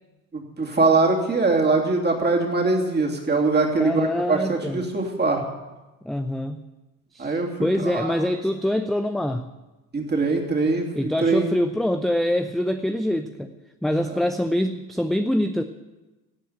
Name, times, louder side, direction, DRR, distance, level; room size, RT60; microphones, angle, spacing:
voice 1, 0.3-5.4 7.2-7.5 7.8-8.1 9.9-11.5, right 3 dB, 20° right, 1 dB, 2.8 m, -22 dB
voice 2, 3.8-4.8 6.0-6.6 7.1-9.5 11.0-13.5 13.8-15.6, left 1 dB, ahead, 7 dB, 0.4 m, -25 dB
17.0 x 8.4 x 8.0 m, 1.1 s
figure-of-eight pair, 55°, 46 cm